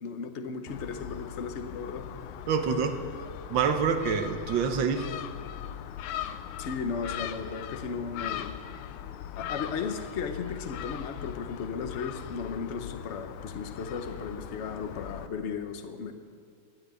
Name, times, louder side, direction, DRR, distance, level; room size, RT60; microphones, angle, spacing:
voice 1, 0.0-2.1 6.6-8.6 9.4-16.1, left 5 dB, 50° left, 7 dB, 0.9 m, -35 dB
Gull seagull, 0.7-15.3, left 10 dB, 85° left, 1.5 m, -40 dB
voice 2, 2.5-3.0 3.5-5.1, right 6 dB, 65° right, 7 dB, 1.6 m, -26 dB
13.0 x 8.6 x 9.4 m, 2.3 s
omnidirectional pair, 2.3 m